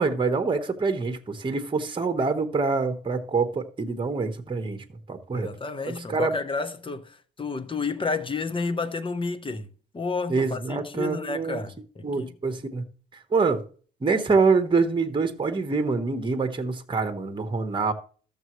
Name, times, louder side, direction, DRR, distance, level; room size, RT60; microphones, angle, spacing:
voice 1, 0.0-5.5 5.9-6.4 10.3-11.6 12.0-12.8 13.1-13.6 14.0-17.9, right 4 dB, 25° right, 1.3 m, -25 dB
voice 2, 5.3-9.7 9.9-12.3, left 4 dB, 25° left, 1.0 m, -31 dB
13.5 x 6.9 x 3.1 m
cardioid pair, 90°, 20 cm